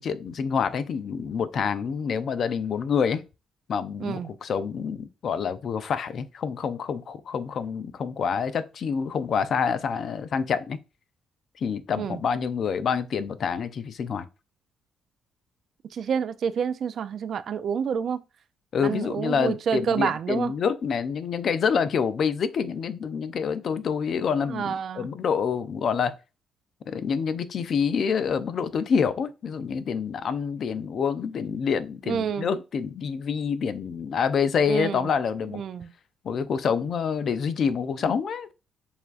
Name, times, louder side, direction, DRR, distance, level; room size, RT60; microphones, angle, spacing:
voice 1, 0.0-3.2 3.7-10.8 11.6-14.2 18.7-26.1 26.9-35.6 36.2-38.5, left 6 dB, 60° left, 0.4 m, -27 dB
voice 2, 4.0-4.3 12.0-12.2 15.9-18.2 18.8-20.5 24.5-25.1 32.1-32.5 34.7-35.1 35.5-35.9, right 7 dB, 60° right, 0.3 m, -28 dB
6.9 x 2.5 x 2.4 m
cardioid pair, 90°, 0 cm